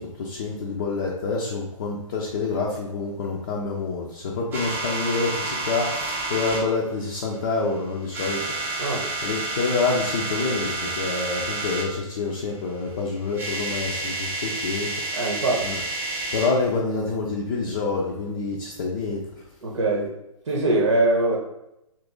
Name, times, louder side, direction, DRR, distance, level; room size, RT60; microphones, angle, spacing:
voice 1, 0.0-15.8 16.3-19.2, left 4 dB, 35° left, -3 dB, 0.5 m, -27 dB
sound 1, 4.5-6.6 7.4-7.7 8.0-11.9 13.0-13.1 13.3-16.6, right 2 dB, 10° right, 0.5 m, -30 dB
voice 2, 15.2-15.6 19.6-20.1 20.5-21.4, right 2 dB, 60° right, -2 dB, 0.8 m, -22 dB
2.8 x 2.5 x 3.5 m, 0.87 s
figure-of-eight pair, 130°, 17 cm